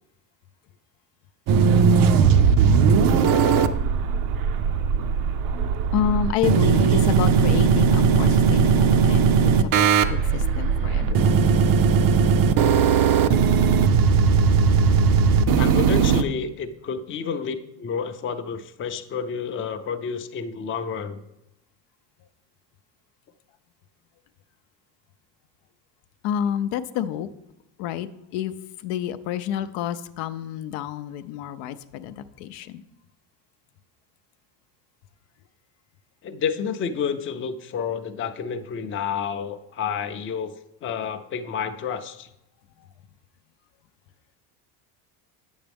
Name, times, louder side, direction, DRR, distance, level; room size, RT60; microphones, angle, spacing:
sound 1, 1.5-16.2, right 6 dB, 50° right, 0.5 m, -18 dB
voice 1, 5.9-11.5 26.2-27.3 27.8-28.5 28.8-32.8 42.8-42.9, left 10 dB, 75° left, 11 dB, 0.6 m, -29 dB
voice 2, 15.5-21.2 36.2-40.5 40.8-42.3, left 6 dB, 30° left, 7 dB, 0.5 m, -30 dB
8.8 x 7.2 x 3.4 m, 0.88 s
cardioid pair, 115°, 44 cm